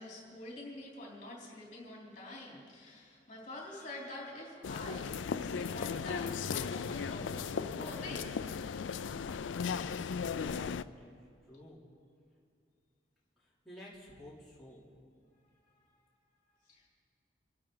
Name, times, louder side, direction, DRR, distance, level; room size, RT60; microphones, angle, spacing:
voice 1, 0.0-8.5 15.7-15.8 16.7-16.9, left 1 dB, 45° left, -3 dB, 3.5 m, -46 dB
sound 1, 4.6-10.8, left 6 dB, 90° left, 0.4 m, -36 dB
voice 2, 10.8-11.9 13.4-14.9, left 1 dB, ahead, -9 dB, 3.2 m, -53 dB
27.5 x 12.5 x 3.9 m, 2.3 s
head